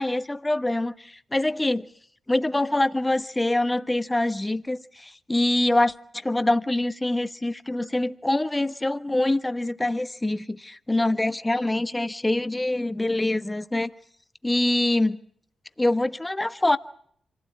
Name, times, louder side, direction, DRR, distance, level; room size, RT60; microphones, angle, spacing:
voice 1, 0.0-1.9 2.3-13.9 14.4-15.2 15.8-16.8, left 1 dB, 20° left, 1.2 m, -25 dB
26.0 x 16.0 x 8.5 m
supercardioid pair, 40°, 0 cm